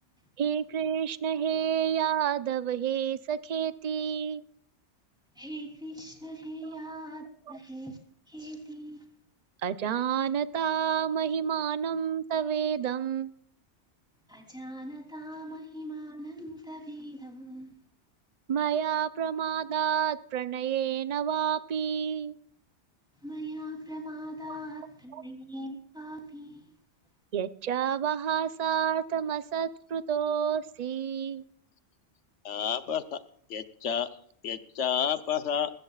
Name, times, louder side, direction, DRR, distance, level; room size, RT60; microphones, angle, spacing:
voice 1, 0.4-4.4 9.6-13.3 18.5-22.3 24.5-24.6 25.1-25.2 27.3-31.4, right 8 dB, 40° right, 0.7 m, -29 dB
voice 2, 5.3-8.0 8.3-9.1 14.3-17.7 23.2-26.7, equal, 5° right, 3.0 m, -41 dB
voice 3, 32.4-33.2 33.5-34.1 34.4-35.7, left 8 dB, 85° left, 1.2 m, -30 dB
21.0 x 16.0 x 2.4 m
omnidirectional pair, 1.2 m